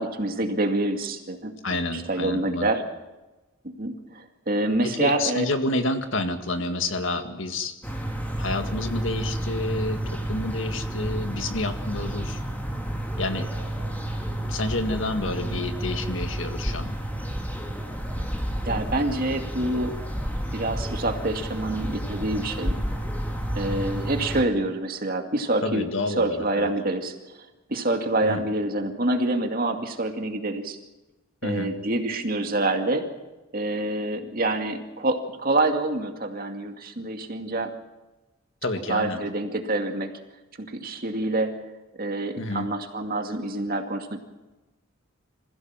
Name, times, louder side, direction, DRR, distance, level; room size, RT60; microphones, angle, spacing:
voice 1, 0.0-1.5 1.9-2.8 3.6-5.5 15.3-15.7 18.6-20.0 20.5-22.8 23.5-27.4 27.7-30.8 31.4-33.1 33.5-37.7 38.9-40.1 40.6-41.6 42.0-44.2, right 2 dB, 45° right, 4 dB, 2.3 m, -27 dB
voice 2, 1.6-2.7 4.8-7.7 8.4-12.4 13.2-13.5 14.5-17.0 25.6-26.7 28.2-28.4 31.4-31.7 38.6-39.2 42.4-42.7, left 2 dB, 65° left, 7 dB, 2.0 m, -29 dB
sound 1, 7.8-24.4, right 1 dB, 10° left, 2.4 m, -30 dB
26.0 x 15.5 x 7.5 m, 1.1 s
head